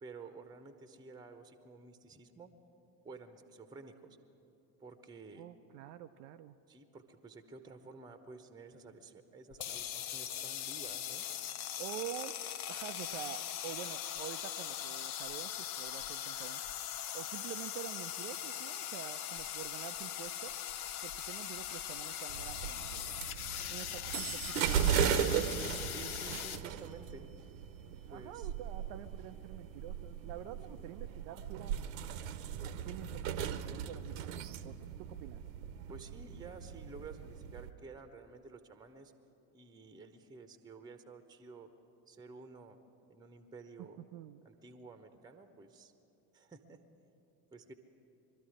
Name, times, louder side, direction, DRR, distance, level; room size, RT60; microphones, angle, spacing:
voice 1, 0.0-2.5 3.0-4.2 4.8-5.4 6.7-11.3 25.9-27.3 28.1-28.5 30.7-30.9 35.9-39.1 39.5-41.7 42.1-42.8 43.1-44.0 44.4-45.9 46.3-46.8 47.5-47.7, right 4 dB, 10° right, 9 dB, 0.8 m, -52 dB
voice 2, 5.3-6.6 11.8-12.3 12.7-16.6 17.1-20.6 21.0-23.1 23.7-25.3 28.1-31.9 32.6-35.4 43.8-44.4, right 11 dB, 35° right, 10 dB, 0.4 m, -47 dB
sound 1, 9.5-26.6, left 10 dB, 60° left, 0.8 m, -41 dB
sound 2, 22.3-37.7, right 8 dB, 55° right, 0.8 m, -37 dB
22.5 x 13.0 x 4.9 m, 2.9 s
figure-of-eight pair, 75°, 49 cm